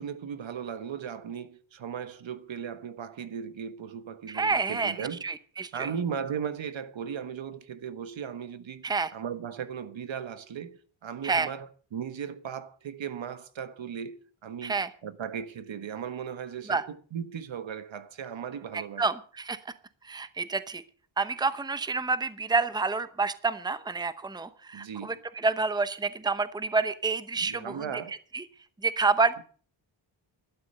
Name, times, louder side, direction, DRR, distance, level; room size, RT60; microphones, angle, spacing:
voice 1, 0.0-5.2 5.7-8.8 9.1-19.1 24.7-25.2 27.4-28.1, right 7 dB, 75° right, 1.4 m, -37 dB
voice 2, 4.3-5.9 8.8-9.1 11.2-11.5 14.6-14.9 16.7-16.8 18.7-19.6 20.0-20.8 21.2-28.4 28.8-29.3, right 4 dB, 10° right, 0.8 m, -28 dB
12.0 x 12.0 x 6.6 m
wide cardioid pair, 165°, 46 cm